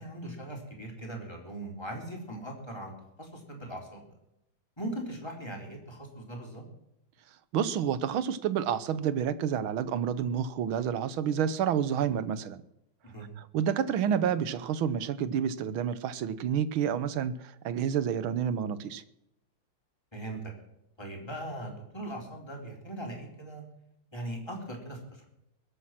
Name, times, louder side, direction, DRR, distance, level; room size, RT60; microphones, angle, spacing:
voice 1, 0.0-4.1 4.8-6.6 13.0-13.3 20.1-20.5 21.0-23.6 24.1-25.3, right 1 dB, 10° left, 0 dB, 4.0 m, -40 dB
voice 2, 7.5-12.6 13.4-19.0, right 8 dB, 75° right, 15 dB, 1.7 m, -29 dB
21.5 x 8.5 x 5.9 m, 0.84 s
omnidirectional pair, 2.3 m